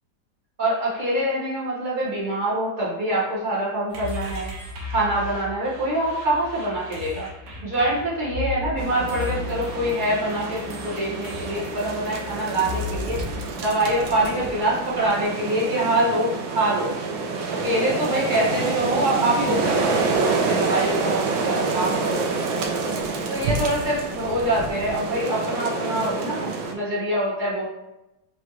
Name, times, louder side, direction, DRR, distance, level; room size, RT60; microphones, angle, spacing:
voice 1, 0.6-4.5 4.9-7.3 7.6-13.2 13.6-16.9 17.5-22.3 23.3-27.6, right 1 dB, 30° right, -6 dB, 1.0 m, -25 dB
sound 1, 3.9-13.3, left 3 dB, 60° right, 1.0 m, -35 dB
sound 2, 8.8-26.7, right 4 dB, 80° right, 1.3 m, -27 dB
4.8 x 3.0 x 2.9 m, 0.93 s
omnidirectional pair, 2.2 m